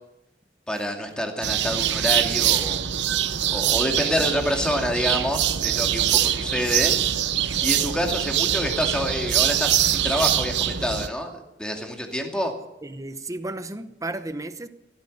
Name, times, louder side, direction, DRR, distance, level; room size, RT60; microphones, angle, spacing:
voice 1, 0.7-2.9 3.5-6.9 7.6-12.5, equal, 5° left, 2.4 m, -27 dB
sound 1, 1.4-11.1, right 10 dB, 65° right, 0.9 m, -23 dB
voice 2, 12.8-14.7, right 2 dB, 20° right, 0.9 m, -33 dB
16.0 x 13.5 x 6.5 m
head